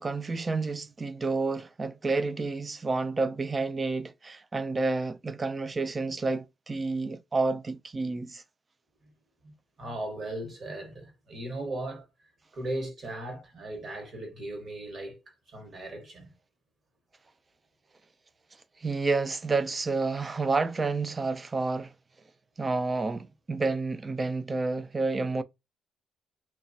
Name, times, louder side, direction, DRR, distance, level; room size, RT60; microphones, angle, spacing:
voice 1, 0.0-8.4 18.8-21.9 22.6-25.4, right 3 dB, 30° right, 0.3 m, -29 dB
voice 2, 9.8-12.0 12.5-16.3, right 1 dB, 50° right, 1.2 m, -37 dB
2.8 x 2.2 x 2.6 m
cardioid pair, 90°, 0 cm